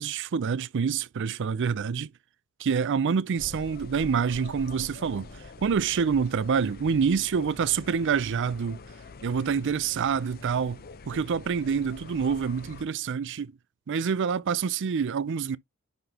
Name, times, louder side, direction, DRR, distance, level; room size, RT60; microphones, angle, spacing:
voice 1, 0.0-2.1 2.6-8.8 9.2-10.8 11.1-13.5 13.9-15.6, right 6 dB, 60° right, 0.4 m, -27 dB
sound 1, 3.4-12.8, left 3 dB, 45° left, 0.7 m, -45 dB
10.5 x 4.0 x 2.9 m
head